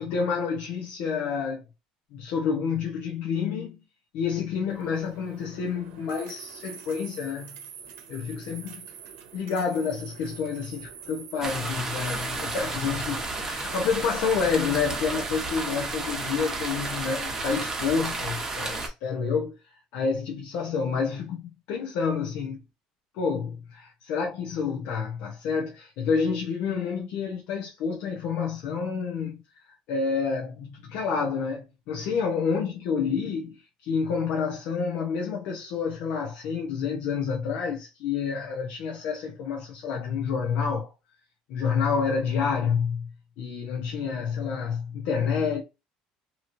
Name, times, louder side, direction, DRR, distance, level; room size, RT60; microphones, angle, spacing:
voice 1, 0.0-1.6 2.1-3.8 4.1-7.6 8.1-8.8 9.3-19.5 19.9-22.6 23.1-29.4 29.9-40.9 41.5-43.1 43.4-45.6, left 6 dB, 70° left, 0.8 m, -29 dB
sound 1, 4.7-12.6, right 7 dB, 85° right, 0.8 m, -45 dB
sound 2, 11.4-18.9, right 3 dB, 20° right, 1.0 m, -32 dB
3.0 x 2.9 x 2.6 m
cardioid pair, 120°, 3 cm